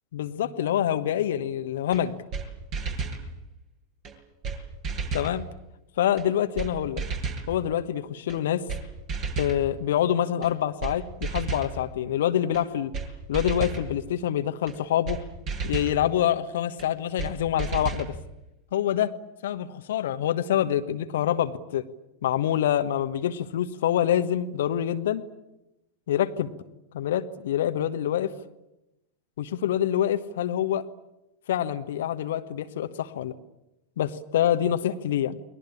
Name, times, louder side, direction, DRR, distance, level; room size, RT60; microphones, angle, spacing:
voice 1, 0.1-2.1 5.1-5.4 6.0-7.0 7.5-8.7 9.4-12.9 13.3-15.2 15.6-18.1 18.7-19.1 19.4-21.8 22.2-25.2 26.1-26.5 26.9-28.3 29.4-30.9 31.5-33.3 34.0-35.4, left 11 dB, 60° left, 9 dB, 1.3 m, -26 dB
sound 1, 1.9-2.0 2.3-2.5 2.7-3.2 4.1-4.2 4.4-4.6 4.8-5.3 6.2-6.3 6.6-6.7 7.0-7.5 8.3-8.4 8.7-8.8 9.1-9.6 10.4-10.5 10.8-11.0 11.2-11.7 12.5-12.6 12.9-13.1 13.3-13.8 14.7-14.8 15.1-15.2 15.5-16.0 16.8-16.9 17.2-17.3 17.6-18.1, right 4 dB, 40° right, 5.9 m, -31 dB
29.5 x 21.5 x 8.6 m, 0.92 s
figure-of-eight pair, 90°, 0 cm